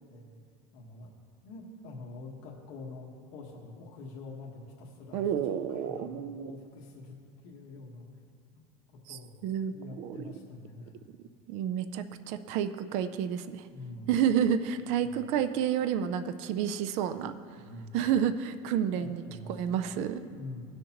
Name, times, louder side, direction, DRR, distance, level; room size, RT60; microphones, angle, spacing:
voice 1, 0.7-1.1 1.4-8.1 8.5-8.7 9.1-9.4 9.7-10.9 13.7-14.1 14.4-14.5 15.0-15.3 17.5-18.0 18.9-19.9 20.3-20.6, left 2 dB, 65° left, -3 dB, 1.4 m, -45 dB
voice 2, 5.1-6.5 9.1-10.2 11.5-13.7 14.1-17.3 17.9-19.2 19.5-20.2, right 9 dB, 55° right, 10 dB, 0.4 m, -30 dB
17.0 x 6.4 x 3.0 m, 2.1 s
cardioid pair, 165°, 14 cm